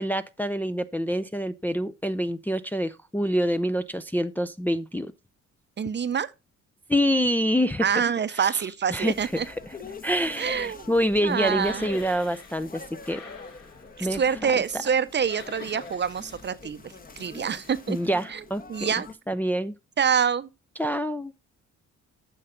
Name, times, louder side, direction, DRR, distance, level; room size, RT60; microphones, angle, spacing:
voice 1, 0.0-5.1 6.9-7.9 8.5-8.6 8.9-9.1 10.0-13.2 14.0-14.2 17.9-18.6 19.3-19.7 20.8-21.3, equal, 5° left, 0.5 m, -26 dB
voice 2, 5.8-6.3 7.8-9.5 10.4-10.9 11.2-11.9 14.0-18.0 18.3-18.4 18.7-19.1 20.0-20.5, right 7 dB, 35° right, 0.7 m, -26 dB
sound 1, 8.9-19.1, left 3 dB, 30° left, 1.1 m, -44 dB
sound 2, 11.5-12.7 13.0-14.1 15.2-16.4, left 5 dB, 70° left, 4.0 m, -47 dB
10.0 x 6.5 x 3.8 m
cardioid pair, 90°, 30 cm